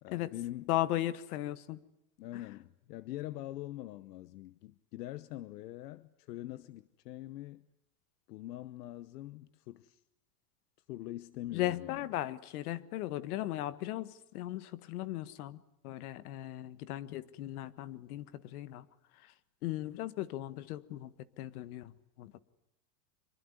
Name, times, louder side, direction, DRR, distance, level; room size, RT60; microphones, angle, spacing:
voice 1, 0.0-0.7 2.2-7.7 8.3-10.0 10.9-12.0, left 15 dB, 85° left, 1.1 m, -44 dB
voice 2, 0.7-1.8 2.3-2.4 11.5-18.9 19.2-19.3 19.6-22.3, left 14 dB, 70° left, 1.6 m, -37 dB
25.0 x 23.5 x 9.7 m
supercardioid pair, 160°, 46 cm